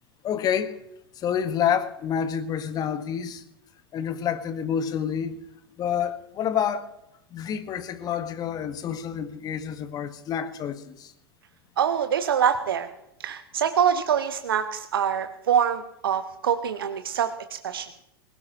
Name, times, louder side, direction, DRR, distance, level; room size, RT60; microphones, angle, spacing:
voice 1, 0.2-0.8 1.1-3.4 3.9-5.4 5.8-6.9 7.3-11.1, left 8 dB, 30° left, 1.6 m, -28 dB
voice 2, 11.8-12.9 13.2-17.3 17.6-17.9, right 8 dB, 70° right, 1.1 m, -24 dB
25.0 x 17.0 x 3.0 m
figure-of-eight pair, 90°, 13 cm